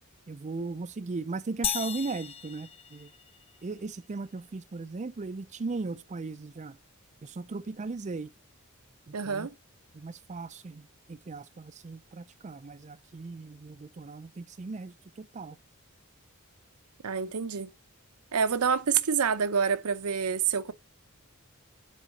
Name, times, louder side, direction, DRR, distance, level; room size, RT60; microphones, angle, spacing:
voice 1, 0.3-3.1 3.6-6.8 7.2-8.3 9.1-9.5 9.9-15.6, right 3 dB, 35° right, 0.4 m, -37 dB
sound 1, 1.6-3.6, left 9 dB, 25° left, 0.4 m, -35 dB
voice 2, 9.1-9.5 17.0-17.7 18.3-20.7, right 6 dB, 85° right, 0.7 m, -27 dB
7.4 x 4.3 x 6.4 m
head